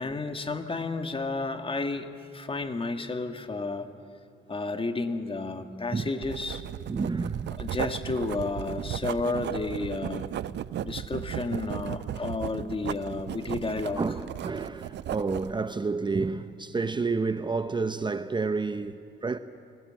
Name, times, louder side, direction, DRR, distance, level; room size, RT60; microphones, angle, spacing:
voice 1, 0.0-3.9 4.5-6.6 7.6-10.3 10.8-14.0, left 3 dB, 25° left, 1.7 m, -32 dB
Writing, 6.2-15.6, right 12 dB, 65° right, 0.6 m, -35 dB
voice 2, 6.9-7.5 10.7-11.0 14.0-19.4, right 4 dB, 25° right, 0.7 m, -30 dB
29.5 x 20.0 x 7.6 m
cardioid pair, 90°, 20 cm